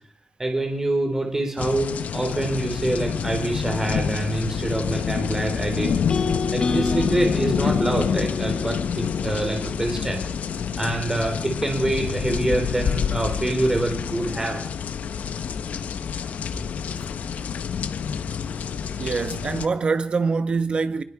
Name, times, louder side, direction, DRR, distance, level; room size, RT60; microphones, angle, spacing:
voice 1, 0.4-5.9 6.5-10.2 10.8-14.6 18.3-18.4 18.8-18.9, right 1 dB, 20° right, 4.2 m, -25 dB
sound 1, 1.6-19.7, left 7 dB, 80° left, 1.0 m, -28 dB
sound 2, 6.1-10.2, left 4 dB, 40° left, 1.4 m, -29 dB
voice 2, 19.0-21.0, right 4 dB, 40° right, 1.2 m, -24 dB
25.5 x 21.0 x 4.9 m
wide cardioid pair, 140°, 3 cm